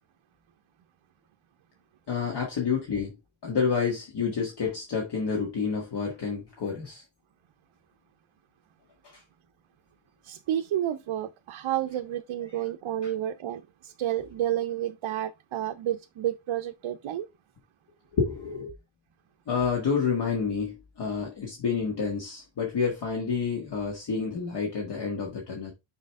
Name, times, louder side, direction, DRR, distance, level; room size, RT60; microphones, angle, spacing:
voice 1, 2.1-3.2 3.4-7.0 9.0-9.2 13.0-13.1 18.1-18.7 19.5-25.7, left 5 dB, 55° left, 1.8 m, -29 dB
voice 2, 10.2-17.3, right 12 dB, 85° right, 0.7 m, -30 dB
6.4 x 5.0 x 3.5 m
wide cardioid pair, 175°, 48 cm